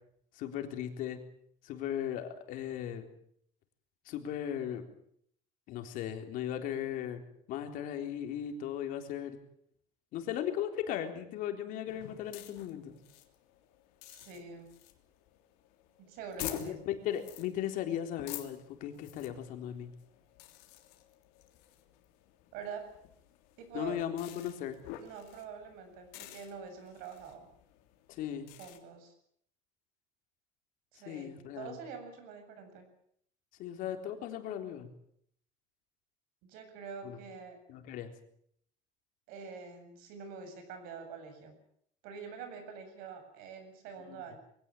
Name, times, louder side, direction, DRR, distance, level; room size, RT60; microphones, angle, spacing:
voice 1, 0.3-1.2 1.6-3.1 4.1-4.9 5.7-7.2 7.5-9.4 10.1-13.0 16.4-19.9 23.7-24.8 28.1-28.5 31.1-31.8 33.6-34.9 37.0-37.2 37.7-38.1 44.1-44.2, left 10 dB, 60° left, 6 dB, 3.7 m, -37 dB
sound 1, 11.9-28.8, left 13 dB, 85° left, 3.2 m, -50 dB
voice 2, 14.1-14.7 16.0-16.8 22.5-23.0 23.6-24.0 25.0-27.5 28.6-29.1 30.9-32.9 36.4-37.6 39.3-41.5 42.0-44.4, right 5 dB, 75° right, 7 dB, 7.7 m, -46 dB
22.5 x 17.0 x 9.1 m, 0.68 s
cardioid pair, 150°, 15 cm